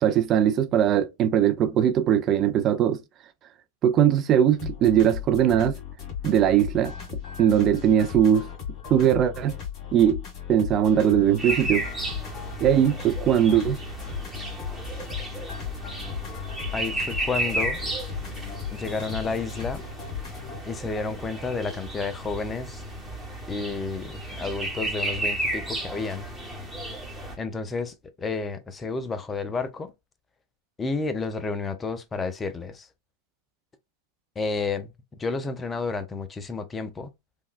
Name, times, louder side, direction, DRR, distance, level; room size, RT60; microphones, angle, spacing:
voice 1, 0.0-3.0 3.8-5.8 6.2-6.9 7.4-8.5 8.9-9.6 9.9-10.2 10.5-11.8 12.6-13.8, right 10 dB, 35° right, 0.5 m, -20 dB
sound 1, 4.6-20.6, left 8 dB, 40° left, 1.8 m, -36 dB
sound 2, 11.4-27.4, right 1 dB, 5° right, 1.1 m, -33 dB
voice 2, 16.7-17.8 18.7-19.8 20.6-22.8 23.5-26.3 27.4-29.9 30.8-32.9 34.4-37.1, left 4 dB, 20° left, 0.5 m, -31 dB
3.4 x 2.2 x 2.4 m
hypercardioid pair, 100°, 0 cm